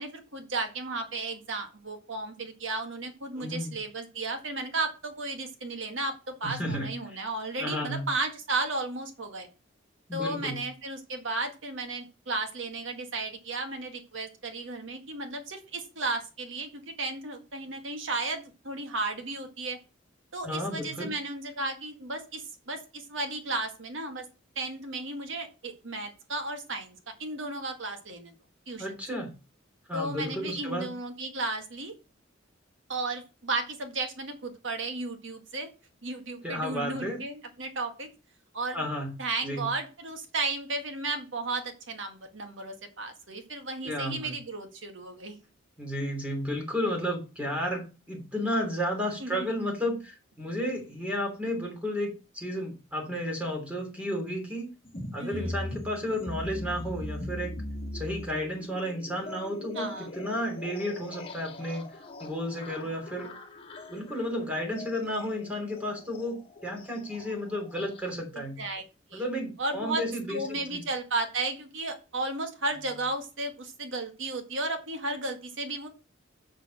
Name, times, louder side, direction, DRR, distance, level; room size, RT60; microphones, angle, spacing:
voice 1, 0.0-9.5 10.1-19.8 20.3-24.3 24.6-28.3 28.7-29.0 29.9-31.9 32.9-35.7 36.0-38.1 38.5-38.9 39.2-45.4 49.2-49.5 55.2-55.6 59.8-60.1 68.3-68.8 69.1-69.2 69.6-70.0 70.3-75.9, right 2 dB, 70° right, 5 dB, 1.8 m, -34 dB
voice 2, 3.3-3.7 6.4-6.9 7.6-8.1 10.1-10.6 20.4-21.1 28.8-29.3 29.9-30.9 36.4-37.2 38.7-39.1 39.4-39.7 43.8-44.3 45.8-54.7 55.1-57.5 57.9-61.9 62.2-63.3 63.9-68.6 69.1-70.8, equal, 5° right, 1 dB, 3.1 m, -32 dB
sound 1, 54.8-68.1, left 1 dB, 30° left, 1.8 m, -41 dB
6.5 x 6.3 x 6.3 m, 0.32 s
head